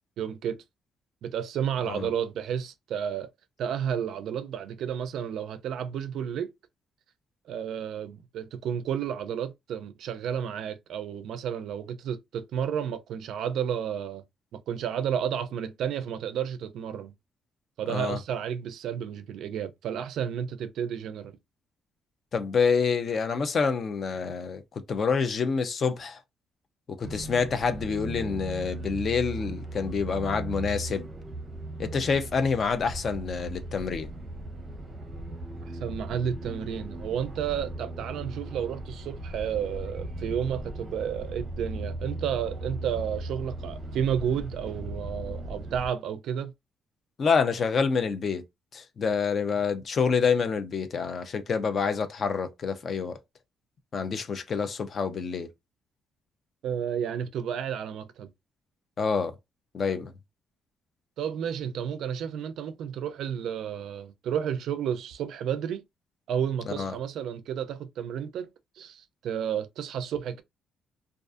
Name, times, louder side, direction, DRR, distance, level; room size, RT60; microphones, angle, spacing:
voice 1, 0.2-0.6 1.2-3.3 3.6-6.5 7.5-14.2 14.5-17.1 17.8-21.3 35.6-46.5 56.6-58.3 61.2-65.8 66.3-68.5 68.8-70.4, right 8 dB, 65° right, 0.3 m, -31 dB
voice 2, 17.9-18.2 22.3-26.2 27.0-31.1 31.8-34.1 47.2-48.4 48.7-53.2 53.9-55.5 59.0-59.3 59.7-60.1 66.7-66.9, left 5 dB, 35° left, 0.4 m, -27 dB
sound 1, 27.0-45.9, right 1 dB, 25° right, 0.7 m, -37 dB
2.5 x 2.3 x 2.4 m
cardioid pair, 180°, 0 cm